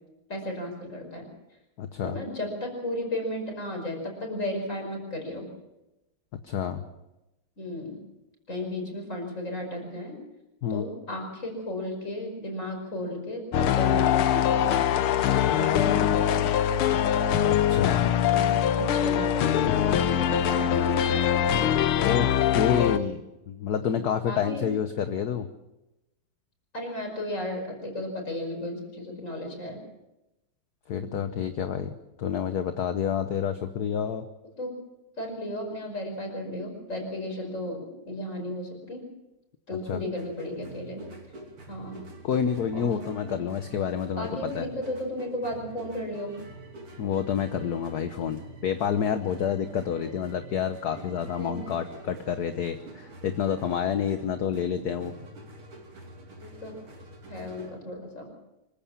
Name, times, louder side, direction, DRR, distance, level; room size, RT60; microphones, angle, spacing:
voice 1, 0.3-1.3 2.0-5.5 7.6-8.0 8.5-10.2 10.7-14.9 15.5-16.5 18.3-18.5 18.8-21.5 23.8-24.0 24.2-24.7 26.7-29.8 30.9-31.2 34.6-34.7 35.2-39.0 39.7-41.0 41.7-42.0 42.7-43.3 44.2-46.3 51.4-51.7 56.4-56.7 57.3-58.2, left 1 dB, 35° left, 2 dB, 5.7 m, -34 dB
voice 2, 1.8-2.2 6.4-6.8 10.6-10.8 17.4-18.1 22.0-25.5 30.9-31.9 32.2-34.2 39.9-40.0 42.2-44.7 47.0-55.1, left 8 dB, 55° left, 9 dB, 1.3 m, -28 dB
sound 1, 13.5-23.0, left 10 dB, 80° left, 1.8 m, -23 dB
sound 2, 40.2-57.8, right 2 dB, 85° right, 4.0 m, -46 dB
25.0 x 15.5 x 7.3 m, 0.97 s
omnidirectional pair, 2.3 m